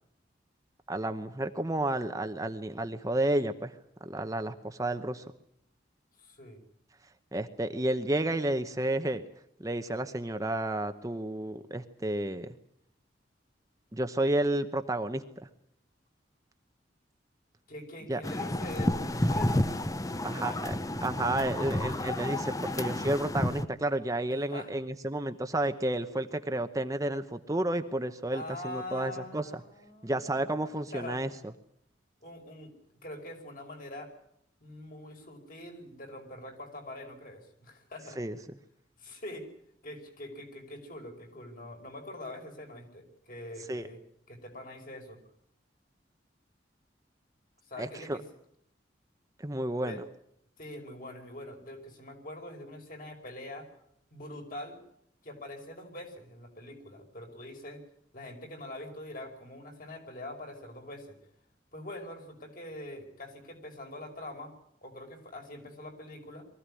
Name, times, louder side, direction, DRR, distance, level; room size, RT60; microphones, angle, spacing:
voice 1, 0.9-3.7 4.0-5.2 7.3-9.3 9.6-12.6 13.9-15.5 18.1-18.2 20.2-20.7 21.0-29.4 30.0-31.3 38.2-38.4 43.7-43.9 47.8-48.2 49.4-50.0, right 1 dB, 20° right, 8 dB, 0.9 m, -31 dB
voice 2, 6.2-6.6 17.7-19.7 20.0-20.8 24.5-24.7 28.3-31.2 32.2-32.7 33.0-34.1 34.6-38.2 39.0-39.5 39.8-44.0 44.3-45.2 47.6-48.3 49.8-50.0 50.6-53.7 54.1-54.8 55.2-57.8 58.1-61.2 61.7-64.6 64.8-66.5, left 1 dB, 50° left, 4 dB, 5.3 m, -44 dB
sound 1, 18.2-23.7, left 1 dB, 20° left, 0.8 m, -31 dB
23.5 x 15.5 x 9.9 m, 0.74 s
head